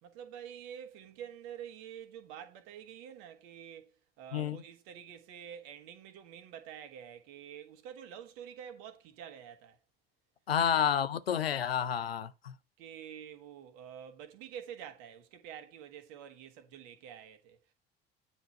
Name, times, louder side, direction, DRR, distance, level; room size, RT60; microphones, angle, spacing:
voice 1, 0.0-9.8 10.7-10.8 12.8-17.6, right 9 dB, 60° right, 1.6 m, -48 dB
voice 2, 4.3-4.6 10.5-12.5, left 8 dB, 85° left, 0.6 m, -30 dB
9.6 x 4.5 x 4.5 m
figure-of-eight pair, 55°, 29 cm